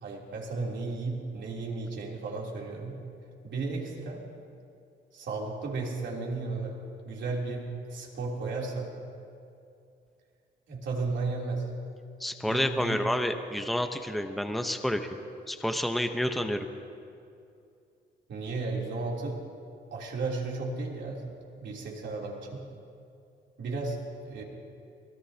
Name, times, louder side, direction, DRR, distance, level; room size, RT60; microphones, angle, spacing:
voice 1, 0.0-3.0 3.4-4.3 5.1-6.8 7.0-9.0 10.7-11.6 12.5-13.0 18.3-19.4 19.9-21.2 21.6-22.6 23.6-24.0 24.2-24.4, right 3 dB, 65° right, -3 dB, 3.4 m, -34 dB
voice 2, 12.2-15.1 15.5-16.7, left 1 dB, ahead, 6 dB, 0.9 m, -29 dB
24.0 x 18.5 x 2.9 m, 2.5 s
cardioid pair, 90°, 20 cm